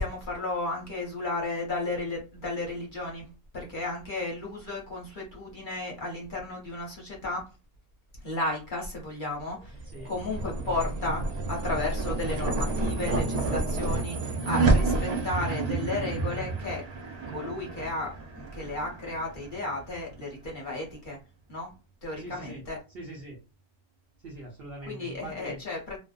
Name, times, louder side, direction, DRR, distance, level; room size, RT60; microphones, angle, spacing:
voice 1, 0.0-3.3 3.5-7.5 8.2-16.8 17.3-21.2 21.5-21.7 22.0-22.8 24.9-26.0, left 2 dB, 45° left, -1 dB, 0.7 m, -33 dB
sound 1, 9.6-20.1, right 3 dB, 70° right, 0.3 m, -30 dB
voice 2, 9.8-10.1 22.2-22.6 22.9-23.4 24.2-25.6, right 1 dB, 55° right, -2 dB, 0.8 m, -42 dB
2.4 x 2.1 x 2.4 m, 0.31 s
omnidirectional pair, 1.3 m